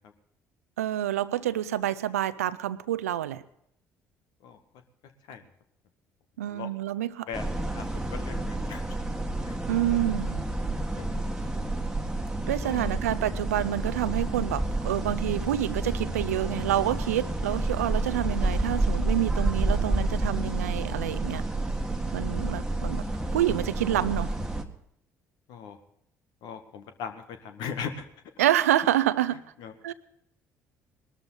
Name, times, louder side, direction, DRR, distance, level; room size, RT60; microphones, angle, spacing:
voice 1, 0.8-3.4 6.4-7.3 9.7-10.5 12.5-21.4 22.1-23.0 23.3-24.3 28.4-29.4 29.8-29.9, right 12 dB, 75° right, 16 dB, 0.6 m, -27 dB
voice 2, 7.3-8.8 9.4-9.6 10.9-11.2 12.4-12.8 22.1-22.2 25.5-25.8 26.4-28.0 29.6-29.7, left 7 dB, 60° left, 8 dB, 1.7 m, -39 dB
sound 1, 7.3-24.6, right 2 dB, 5° right, 1.8 m, -29 dB
20.5 x 13.0 x 4.1 m, 0.73 s
figure-of-eight pair, 50°, 8 cm